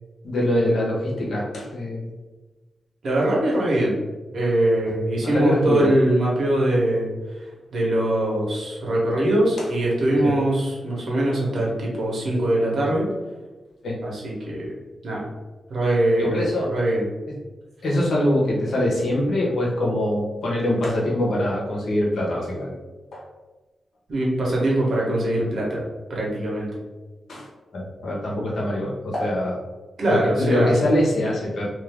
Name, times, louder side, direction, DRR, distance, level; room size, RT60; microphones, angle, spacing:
voice 1, 0.2-2.1 3.5-3.6 5.2-5.9 9.6-9.7 10.2-10.3 13.8-14.0 16.2-16.7 17.8-22.7 23.1-23.2 27.3-29.6 30.1-31.7, left 1 dB, 70° left, -4 dB, 1.0 m, -23 dB
voice 2, 3.0-4.0 4.3-7.1 7.7-13.1 14.0-14.7 15.0-15.3 15.7-17.1 24.1-25.8 26.1-26.7 30.0-30.8, right 1 dB, 65° right, -4 dB, 1.0 m, -22 dB
2.6 x 2.5 x 3.3 m, 1.2 s
wide cardioid pair, 140°, 0 cm